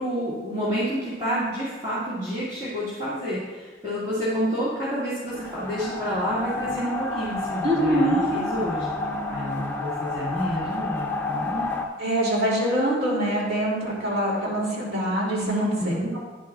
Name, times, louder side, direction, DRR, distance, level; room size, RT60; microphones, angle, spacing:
voice 1, 0.0-8.9 9.3-11.7 15.4-16.1, equal, 30° right, -12 dB, 2.1 m, -29 dB
sound 1, 5.3-11.8, left 3 dB, 10° left, 0.7 m, -30 dB
voice 2, 7.6-8.3 12.0-15.4 15.8-16.2, right 1 dB, 55° right, -4 dB, 2.6 m, -24 dB
9.8 x 9.2 x 2.4 m, 1.3 s
head